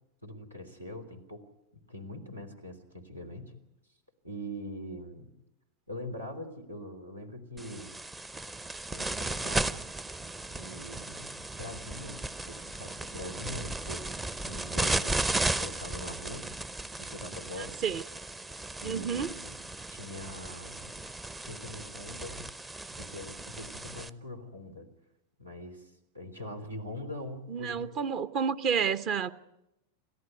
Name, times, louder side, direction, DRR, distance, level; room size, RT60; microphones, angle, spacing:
voice 1, 0.2-1.5 1.7-3.5 4.2-5.3 5.9-7.9 8.9-9.8 10.5-16.5 17.0-17.8 18.5-19.6 19.9-20.9 21.4-22.4 22.9-24.9 25.4-27.8, left 1 dB, 80° right, 5 dB, 3.4 m, -43 dB
sound 1, 7.6-24.1, right 2 dB, 10° right, 0.8 m, -35 dB
voice 2, 18.8-19.3 27.5-29.3, right 7 dB, 35° right, 15 dB, 1.0 m, -30 dB
28.5 x 14.5 x 9.5 m, 0.90 s
figure-of-eight pair, 90°, 0 cm